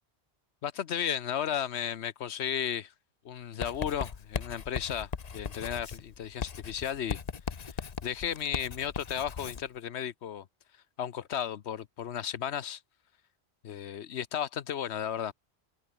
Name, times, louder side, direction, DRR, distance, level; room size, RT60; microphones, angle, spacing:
voice 1, 0.6-2.9 3.2-7.2 7.6-10.5 11.0-12.8 13.6-15.3, left 9 dB, 80° left, 1.1 m, -34 dB
Writing, 3.6-9.7, left 6 dB, 40° left, 0.9 m, -38 dB
omnidirectional pair, 1.1 m